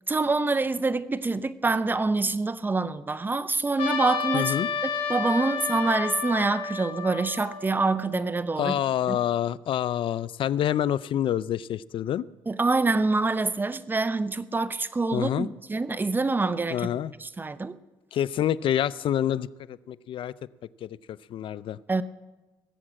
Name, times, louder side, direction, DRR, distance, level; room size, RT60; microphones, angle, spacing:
voice 1, 0.1-4.5 5.1-9.2 12.5-16.9 17.2-17.8 21.9-22.0, right 3 dB, 20° right, 0.7 m, -26 dB
Trumpet, 3.8-8.2, left 6 dB, 85° left, 2.4 m, -31 dB
voice 2, 4.3-4.7 8.6-12.3 15.1-15.5 16.7-17.1 18.1-20.3 20.8-21.8, left 11 dB, 65° left, 0.5 m, -27 dB
19.0 x 7.5 x 8.6 m
cardioid pair, 85°, 9 cm